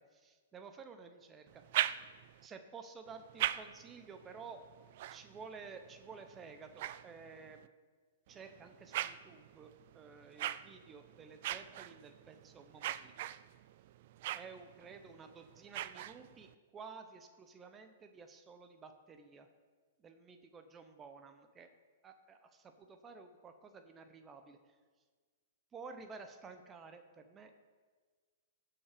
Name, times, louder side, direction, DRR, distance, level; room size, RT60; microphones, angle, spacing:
voice 1, 0.1-1.9 2.4-4.6 5.1-7.7 8.3-13.1 14.3-19.5 20.0-21.7 22.0-24.8 25.7-27.5, right 5 dB, 20° right, 7 dB, 0.7 m, -52 dB
sound 1, 1.5-2.5 3.1-7.7 8.3-16.5, right 13 dB, 55° right, 0.4 m, -42 dB
16.0 x 5.8 x 5.0 m, 1.5 s
hypercardioid pair, 135°, 0 cm